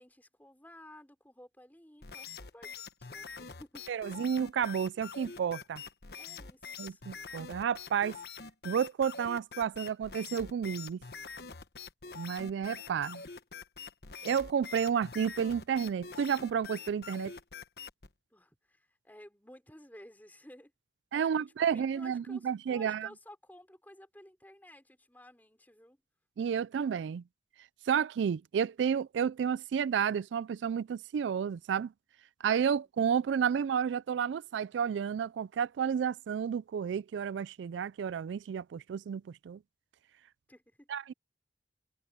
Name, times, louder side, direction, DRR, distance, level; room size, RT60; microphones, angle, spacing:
voice 1, 0.0-2.7 3.0-3.9 6.1-7.0 18.3-20.7 21.1-26.0 32.6-32.9 40.5-40.9, left 1 dB, 10° left, 4.8 m, -55 dB
sound 1, 2.0-18.1, left 6 dB, 65° left, 1.1 m, -45 dB
voice 2, 3.9-5.8 6.8-8.2 8.6-11.0 12.1-13.2 14.2-17.3 21.1-23.1 26.4-27.2 27.9-31.9 32.4-39.6 40.9-41.1, right 7 dB, 90° right, 0.3 m, -31 dB
head